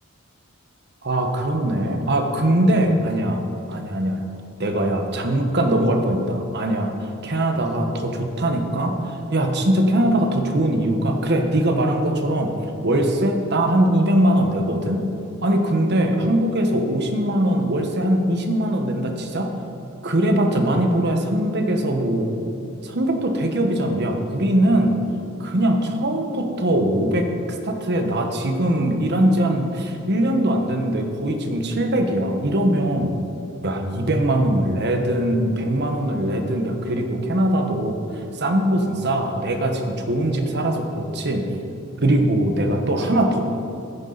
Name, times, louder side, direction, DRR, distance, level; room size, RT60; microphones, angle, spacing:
voice 1, 1.0-3.4 3.7-4.2 4.6-6.9 7.2-12.5 12.8-15.0 15.4-19.5 20.0-22.3 22.8-25.0 25.4-33.2 33.6-41.4 42.0-43.4, right 1 dB, 55° right, 4 dB, 1.3 m, -21 dB
14.5 x 10.0 x 4.1 m, 2.7 s
head